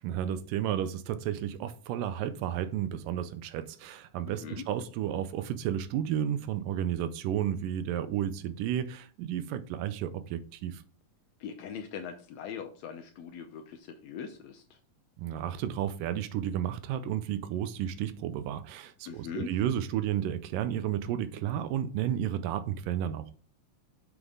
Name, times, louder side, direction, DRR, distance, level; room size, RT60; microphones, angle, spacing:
voice 1, 0.0-10.8 15.2-23.3, right 10 dB, 85° right, 2.2 m, -32 dB
voice 2, 4.3-4.6 11.4-14.8 19.1-19.5, left 7 dB, 80° left, 1.5 m, -41 dB
7.2 x 6.7 x 3.6 m
omnidirectional pair, 4.0 m